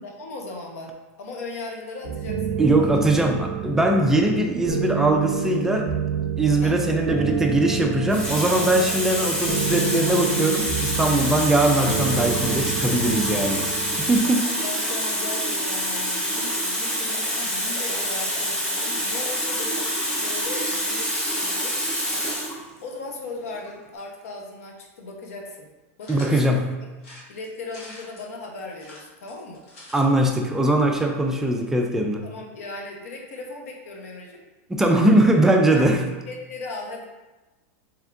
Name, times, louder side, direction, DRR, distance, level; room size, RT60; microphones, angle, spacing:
voice 1, 0.0-3.2 6.6-6.8 14.2-19.9 20.2-21.8 22.8-25.7 26.0-26.5 27.3-29.6 32.2-34.4 35.7-36.0 36.3-37.0, left 3 dB, 85° left, 1 dB, 0.9 m, -37 dB
sound 1, 2.0-14.2, right 7 dB, 50° right, 0.6 m, -29 dB
voice 2, 2.6-5.9 6.4-13.6 14.0-14.5 26.1-26.7 29.9-32.2 34.7-36.0, right 1 dB, 5° right, 2 dB, 0.4 m, -21 dB
Water tap faucet, 7.3-7.5 8.1-22.6 23.5-23.7, equal, 10° left, 0.8 m, -26 dB
sound 2, 26.0-26.5 27.0-28.3 28.7-30.1 30.4-30.5 30.7-30.8, left 1 dB, 65° left, 1.4 m, -44 dB
3.6 x 3.5 x 3.4 m, 1.1 s
supercardioid pair, 155°, 8 cm